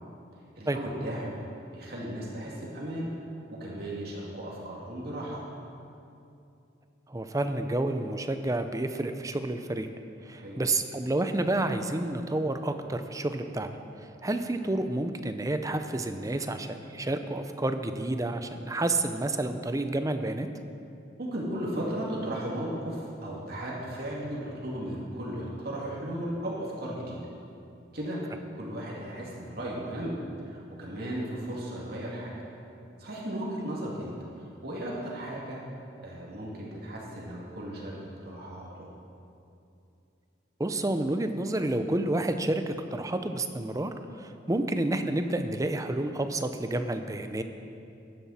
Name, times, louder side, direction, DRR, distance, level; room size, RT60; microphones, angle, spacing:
voice 1, 0.6-1.4 1.7-3.1 3.5-5.4 10.4-10.6 21.2-27.2 27.9-28.2 28.5-30.2 30.4-32.3 33.0-34.1 34.6-35.6 36.0-38.9, right 1 dB, 55° right, -4 dB, 2.6 m, -35 dB
voice 2, 7.1-9.9 10.2-20.5 40.6-47.4, right 2 dB, 15° right, 8 dB, 0.6 m, -30 dB
15.5 x 11.0 x 4.3 m, 2.7 s
head